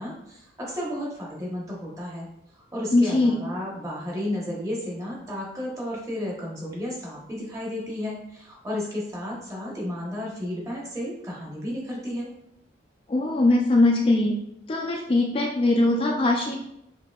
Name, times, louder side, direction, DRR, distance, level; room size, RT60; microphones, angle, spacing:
voice 1, 0.0-2.3 2.5-12.3, left 1 dB, 20° right, -4 dB, 0.9 m, -33 dB
voice 2, 2.9-3.4 13.1-14.4 14.7-16.6, left 2 dB, 30° left, 1 dB, 0.3 m, -21 dB
4.8 x 2.7 x 2.3 m, 0.81 s
head